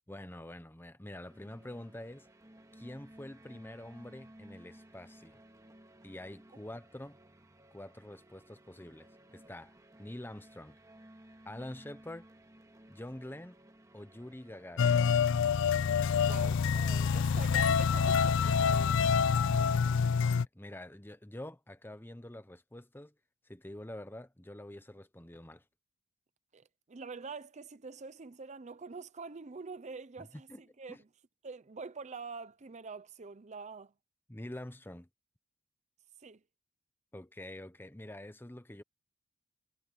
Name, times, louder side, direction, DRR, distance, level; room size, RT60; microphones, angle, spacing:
voice 1, 0.1-2.3 2.7-5.4 6.0-7.2 7.7-10.8 11.4-12.3 12.9-13.6 13.9-15.0 19.6-23.1 23.4-25.6 30.2-30.6 30.9-31.0 34.3-35.1 37.1-38.8, left 1 dB, 10° left, 0.9 m, -46 dB
sound 1, 1.3-15.3, right 1 dB, 15° right, 1.9 m, -57 dB
sound 2, 14.8-20.5, left 6 dB, 60° left, 0.4 m, -27 dB
voice 2, 16.3-19.0 26.5-31.1 31.4-33.9 36.2-36.4, right 4 dB, 30° right, 0.6 m, -45 dB
head